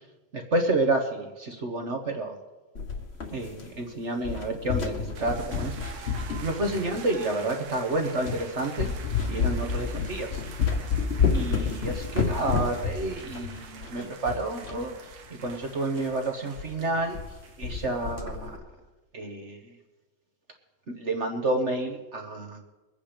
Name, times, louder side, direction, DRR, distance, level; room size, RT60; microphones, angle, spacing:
voice 1, 0.3-2.4 3.3-5.7 6.4-8.9 9.3-10.4 11.3-14.9 15.4-17.2 17.6-18.6 19.1-19.6 20.9-22.6, right 2 dB, 40° right, 4 dB, 1.2 m, -29 dB
sound 1, 2.7-3.9 4.2-7.2 7.8-7.9 8.2-8.4 8.8-14.8 15.1-15.2 15.5-15.6 16.0-16.1 16.6-16.7 16.9-17.3 17.6-18.6, left 5 dB, 35° left, 1.4 m, -30 dB
sound 2, 5.1-17.8, right 6 dB, 90° right, 2.0 m, -46 dB
22.0 x 8.9 x 5.1 m, 1.1 s
omnidirectional pair, 2.3 m